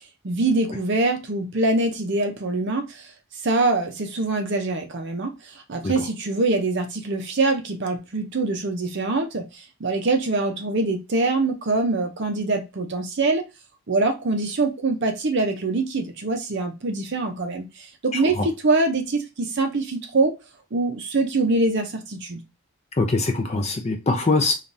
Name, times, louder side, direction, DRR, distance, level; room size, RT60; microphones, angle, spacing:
voice 1, 0.2-3.1 3.4-5.3 5.7-13.4 13.9-20.3 20.7-22.4, right 3 dB, 50° right, 0.5 m, -24 dB
voice 2, 18.1-18.5 23.0-24.5, left 3 dB, 30° left, 0.4 m, -23 dB
3.3 x 2.4 x 2.6 m
head